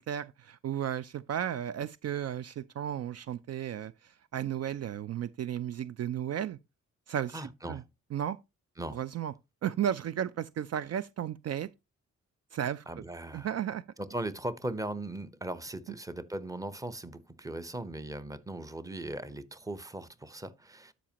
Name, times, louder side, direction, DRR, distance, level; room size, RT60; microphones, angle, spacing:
voice 1, 0.0-6.6 7.1-7.8 8.1-8.4 8.9-9.3 9.6-11.7 12.5-12.8 13.3-13.8, right 10 dB, 55° right, 0.4 m, -34 dB
voice 2, 7.3-7.8 8.8-9.0 12.9-13.5 14.0-20.9, right 1 dB, 10° right, 0.8 m, -38 dB
12.5 x 5.1 x 2.9 m
cardioid pair, 80°, 31 cm